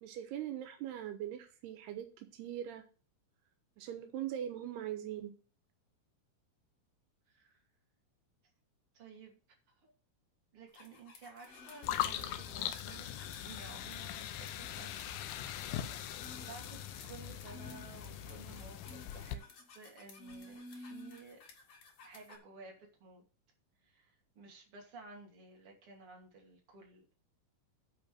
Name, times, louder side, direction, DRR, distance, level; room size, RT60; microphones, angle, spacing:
voice 1, 0.0-2.8 3.8-5.3, right 11 dB, 90° right, 6 dB, 3.2 m, -41 dB
voice 2, 7.3-7.6 8.9-9.4 9.8-9.9 10.5-13.1 13.3-14.9 16.4-21.4 22.0-23.2 23.8-27.0, right 4 dB, 35° right, 0 dB, 3.1 m, -54 dB
sound 1, 10.7-22.4, left 3 dB, 50° left, 2.2 m, -53 dB
sound 2, 11.8-19.3, left 11 dB, 80° left, 2.3 m, -41 dB
9.6 x 5.4 x 6.5 m, 0.36 s
omnidirectional pair, 4.6 m